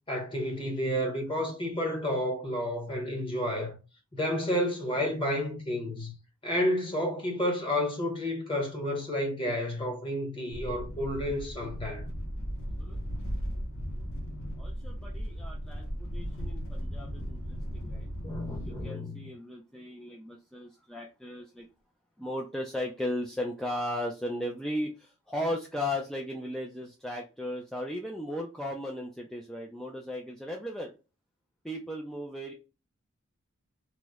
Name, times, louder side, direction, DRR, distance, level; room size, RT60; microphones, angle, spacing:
voice 1, 0.1-3.8 4.1-6.1 6.4-12.1 18.2-19.2, left 1 dB, 25° left, 1.0 m, -31 dB
sound 1, 10.5-18.9, equal, 65° left, 0.8 m, -36 dB
voice 2, 14.6-18.1 18.6-21.7 22.2-30.9 31.6-32.5, left 1 dB, ahead, 0.3 m, -36 dB
2.9 x 2.1 x 3.4 m
head